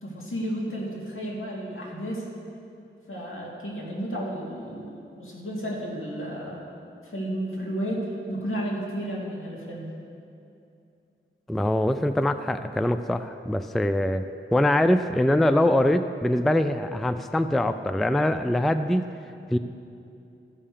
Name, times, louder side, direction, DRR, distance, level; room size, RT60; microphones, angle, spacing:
voice 1, 0.0-2.3 3.1-6.6 7.0-9.9, equal, 75° left, -4 dB, 2.3 m, -32 dB
voice 2, 11.5-14.2 14.5-19.1 19.5-19.6, left 1 dB, ahead, 10 dB, 0.3 m, -23 dB
14.5 x 5.5 x 6.7 m, 2.6 s
wide cardioid pair, 90°, 21 cm